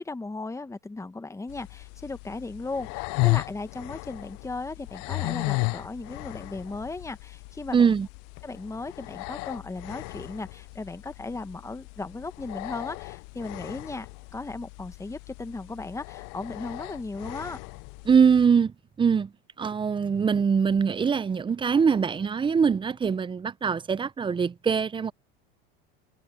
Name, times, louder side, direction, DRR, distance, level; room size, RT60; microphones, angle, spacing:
voice 1, 0.0-7.9 8.4-14.1 14.3-17.6, left 3 dB, 10° left, 1.5 m, -36 dB
sound 1, 1.5-18.5, left 30 dB, 55° left, 0.4 m, -35 dB
voice 2, 7.7-8.1 18.1-19.3 19.6-25.1, right 6 dB, 15° right, 0.5 m, -23 dB
hypercardioid pair, 90°, 30 cm